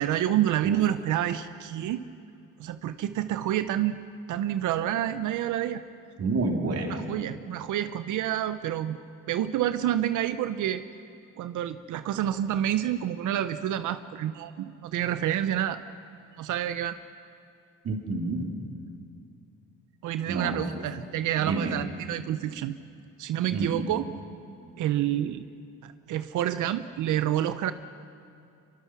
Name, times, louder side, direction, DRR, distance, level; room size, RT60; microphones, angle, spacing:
voice 1, 0.0-2.0 2.6-4.0 4.3-5.8 6.9-9.0 9.3-10.8 11.4-15.8 16.4-17.0 20.0-22.7 23.2-24.1 24.8-25.5 25.8-27.7, right 11 dB, 80° right, 11 dB, 0.8 m, -28 dB
voice 2, 6.2-7.1 17.8-18.5 20.3-20.8 21.4-21.8 23.5-23.9, right 3 dB, 55° right, 2 dB, 3.4 m, -29 dB
24.0 x 23.5 x 6.1 m, 2.5 s
cardioid pair, 90°, 30 cm